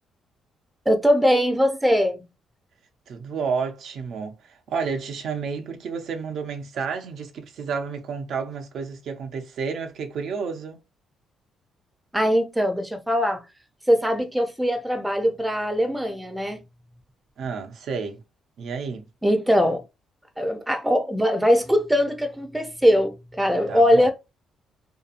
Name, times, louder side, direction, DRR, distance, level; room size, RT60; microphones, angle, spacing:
voice 1, 0.9-2.3 12.1-13.4 13.9-16.6 19.2-19.8 20.4-24.1, equal, 5° right, 0.6 m, -21 dB
voice 2, 3.1-10.8 17.4-18.2 18.6-19.1 23.7-24.1, right 5 dB, 70° right, 0.6 m, -31 dB
2.7 x 2.2 x 2.5 m
cardioid pair, 90°, 0 cm